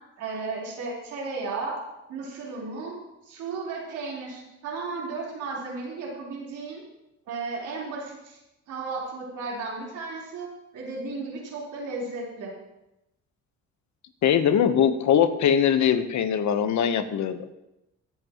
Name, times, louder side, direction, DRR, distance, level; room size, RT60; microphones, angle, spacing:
voice 1, 0.2-1.7 2.1-2.9 3.3-6.8 7.3-8.4 8.7-10.5 10.7-12.5, right 3 dB, 85° right, -4 dB, 4.4 m, -34 dB
voice 2, 14.2-17.5, left 8 dB, 70° left, 9 dB, 1.2 m, -21 dB
24.5 x 8.2 x 3.1 m, 0.92 s
cardioid pair, 90°, 30 cm